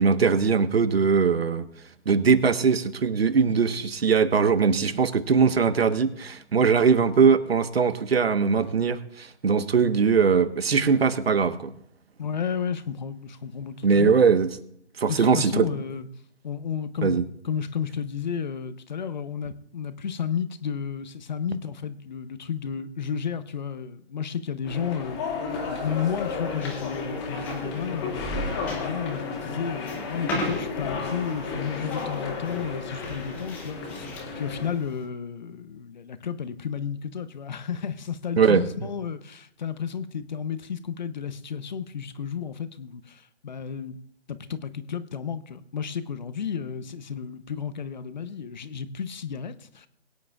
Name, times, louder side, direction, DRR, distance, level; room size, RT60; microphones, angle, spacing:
voice 1, 0.0-1.6 2.0-11.7 13.8-14.5 15.0-15.7 17.0-17.2 38.4-38.6, right 5 dB, 60° right, 1.3 m, -21 dB
voice 2, 12.2-14.1 15.1-16.1 16.4-25.2 25.7-44.0 44.3-49.9, left 7 dB, 40° left, 0.8 m, -32 dB
sound 1, 24.6-34.8, left 4 dB, 25° left, 2.2 m, -33 dB
sound 2, 25.5-35.0, equal, 5° left, 0.8 m, -40 dB
22.5 x 9.7 x 2.5 m
figure-of-eight pair, 155°, 34 cm